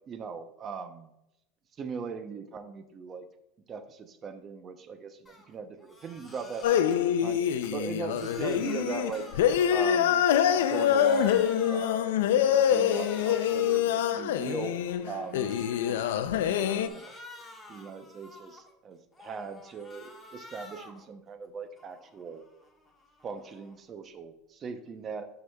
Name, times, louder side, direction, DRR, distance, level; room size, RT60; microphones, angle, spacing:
voice 1, 0.1-1.1 1.8-3.3 3.7-7.4 7.7-9.2 9.7-10.2 10.6-12.2 12.6-14.8 15.0-17.2 17.7-22.4 23.2-25.3, right 5 dB, 35° right, 9 dB, 0.6 m, -39 dB
Crying sobbing, 5.3-5.5 5.8-7.0 7.4-10.2 10.5-12.0 12.4-13.9 14.3-16.0 16.4-18.7 19.1-21.1 21.4-23.8, left 2 dB, 15° left, 1.3 m, -50 dB
sound 1, 6.6-16.9, left 9 dB, 85° left, 0.4 m, -25 dB
11.5 x 4.8 x 2.3 m, 0.85 s
supercardioid pair, 115°, 0 cm